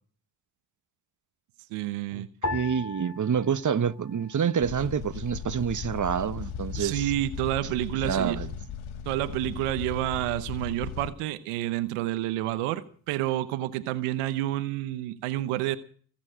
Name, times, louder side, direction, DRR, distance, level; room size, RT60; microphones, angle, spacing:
voice 1, 1.7-2.3 6.8-8.4 9.1-15.8, right 15 dB, 90° right, 1.0 m, -29 dB
sound 1, 2.4-5.0 5.2-6.1 6.7-7.2, left 2 dB, 35° left, 3.8 m, -38 dB
voice 2, 2.5-7.0 8.0-8.5, right 7 dB, 35° right, 1.1 m, -27 dB
sound 2, 4.6-11.1, left 7 dB, 75° left, 1.4 m, -37 dB
22.0 x 7.4 x 8.8 m
hypercardioid pair, 40°, 50 cm